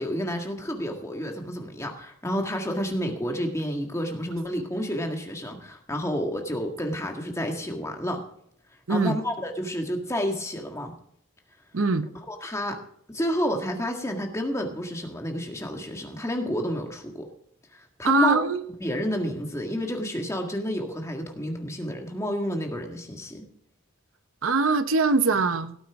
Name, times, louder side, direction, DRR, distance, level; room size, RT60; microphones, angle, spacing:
voice 1, 0.0-8.2 8.9-10.9 12.3-12.8 13.1-17.3 17.7-18.4 18.8-23.5, equal, 15° left, 3 dB, 1.8 m, -30 dB
voice 2, 8.9-9.2 11.7-12.1 18.0-18.6 24.4-25.8, right 4 dB, 75° right, 12 dB, 0.8 m, -22 dB
17.5 x 9.0 x 3.6 m, 0.68 s
head